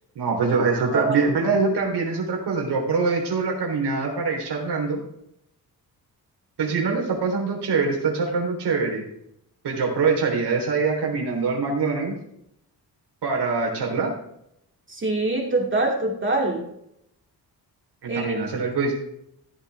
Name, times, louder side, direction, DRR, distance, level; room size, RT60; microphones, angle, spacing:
voice 1, 0.2-5.0 6.6-9.0 9.6-12.1 13.2-14.1 18.0-19.0, right 4 dB, 85° right, 1 dB, 3.7 m, -24 dB
voice 2, 14.9-16.7 18.1-18.3, right 2 dB, 30° right, -1 dB, 2.7 m, -24 dB
15.5 x 8.8 x 3.5 m, 0.76 s
cardioid pair, 100°, 39 cm